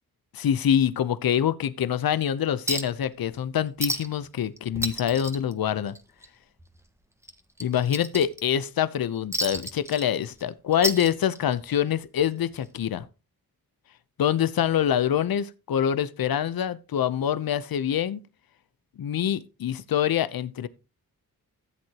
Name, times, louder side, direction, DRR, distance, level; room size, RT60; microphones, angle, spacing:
voice 1, 0.3-5.9 7.6-13.0 14.2-18.2 19.0-20.7, left 9 dB, 70° left, 0.8 m, -25 dB
Chink clink, 2.7-3.0 3.3-3.4 3.8-4.3 4.6-6.3 6.6-6.8 7.2-8.7 9.3-10.4 10.7-11.6 12.7-12.8, right 1 dB, 5° right, 1.5 m, -31 dB
14.5 x 7.9 x 2.9 m
cardioid pair, 60°, 37 cm